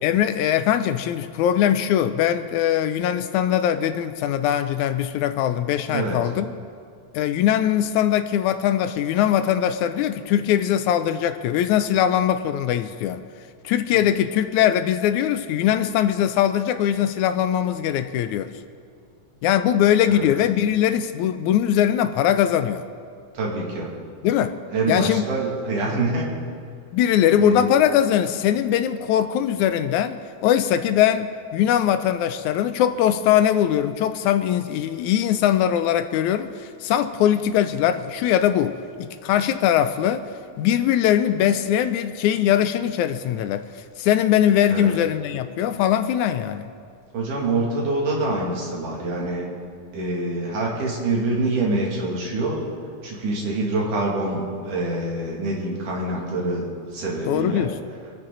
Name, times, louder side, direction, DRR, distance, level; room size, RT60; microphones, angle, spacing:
voice 1, 0.0-6.5 7.1-13.2 13.7-18.5 19.4-22.8 24.2-24.5 24.9-25.2 26.9-40.2 40.6-43.6 44.0-46.6 57.3-57.8, left 10 dB, 80° left, 11 dB, 1.9 m, -21 dB
voice 2, 23.3-23.9 24.7-26.3 27.4-27.7 44.7-44.9 47.1-49.5 49.9-52.6 53.0-56.6 56.9-57.7, right 2 dB, 75° right, -3 dB, 3.9 m, -25 dB
26.0 x 9.7 x 3.9 m, 2.2 s
omnidirectional pair, 3.6 m